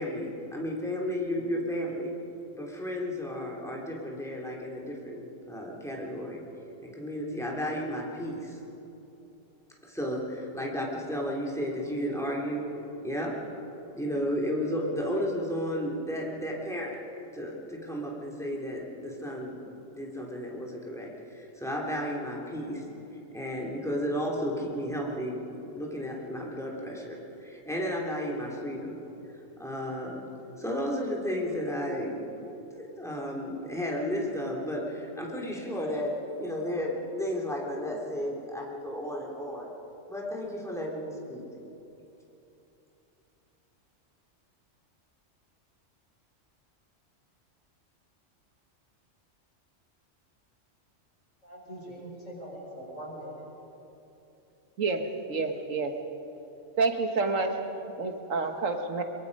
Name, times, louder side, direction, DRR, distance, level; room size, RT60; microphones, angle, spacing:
voice 1, 0.0-2.1 2.5-6.4 6.8-8.6 9.8-12.7 13.0-13.4 13.9-17.0 17.3-22.8 23.3-25.4 25.7-29.0 29.6-30.2 30.6-39.7 40.1-41.4, equal, ahead, -2 dB, 3.1 m, -33 dB
voice 2, 51.4-53.5, right 1 dB, 75° left, -3 dB, 6.0 m, -42 dB
voice 3, 55.3-55.9 56.8-57.6 58.0-59.0, right 4 dB, 85° right, 5 dB, 1.9 m, -28 dB
23.5 x 22.5 x 5.4 m, 3.0 s
omnidirectional pair, 1.3 m